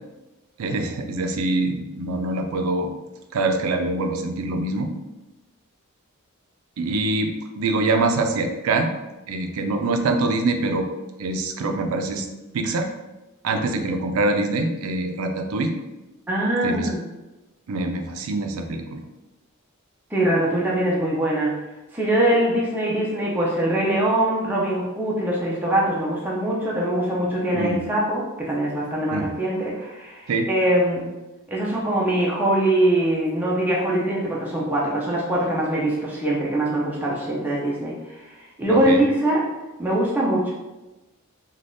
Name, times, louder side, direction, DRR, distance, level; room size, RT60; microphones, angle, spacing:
voice 1, 0.6-2.9 3.3-4.9 6.8-8.9 9.3-10.9 11.2-12.3 12.5-12.9 13.4-15.7 16.6-16.9 17.7-19.0 27.5-27.8 29.1-29.3 30.3-30.5 38.7-39.0, right 2 dB, 85° right, 5 dB, 0.4 m, -24 dB
voice 2, 16.3-17.0 20.1-21.5 21.9-31.1 31.5-38.3 38.6-39.5 39.8-40.5, right 1 dB, 10° right, -5 dB, 0.4 m, -22 dB
3.3 x 2.3 x 2.6 m, 1.1 s
head